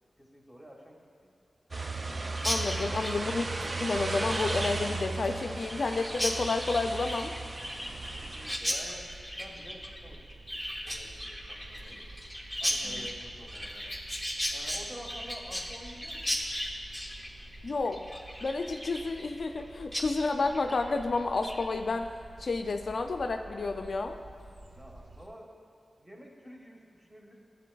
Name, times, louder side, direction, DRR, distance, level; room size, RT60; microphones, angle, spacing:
voice 1, 0.2-1.1 8.1-9.1 9.4-10.6 10.8-12.0 12.6-13.9 14.5-16.4 24.7-25.5 26.0-27.4, equal, 15° right, -1 dB, 1.4 m, -49 dB
sound 1, 1.7-8.6, right 3 dB, 45° right, 0.3 m, -35 dB
voice 2, 2.4-7.3 12.8-13.0 17.6-18.0 18.4-22.1 22.4-24.2, left 3 dB, 70° left, 6 dB, 0.3 m, -30 dB
Chirp tweet, 2.4-19.6 19.9-20.1 20.4-20.8 21.2-21.6, equal, ahead, 0.9 m, -36 dB
sound 2, 7.6-25.3, right 2 dB, 80° right, 0.7 m, -50 dB
11.0 x 7.6 x 2.3 m, 2.3 s
cardioid pair, 50°, 0 cm